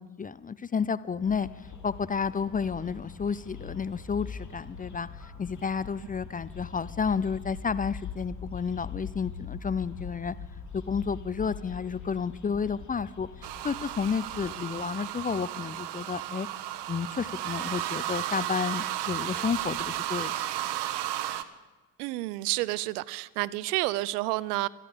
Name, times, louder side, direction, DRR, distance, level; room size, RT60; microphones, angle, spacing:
voice 1, 0.0-10.4 10.7-16.5 16.9-20.3, left 6 dB, 20° left, 17 dB, 0.5 m, -31 dB
sound 1, 1.2-14.6, left 5 dB, 35° left, 3.2 m, -43 dB
sound 2, 13.4-21.4, right 13 dB, 55° right, 1.2 m, -34 dB
voice 2, 22.0-24.7, right 19 dB, 75° right, 21 dB, 0.7 m, -30 dB
25.0 x 11.0 x 5.2 m, 1.3 s
hypercardioid pair, 55°, 48 cm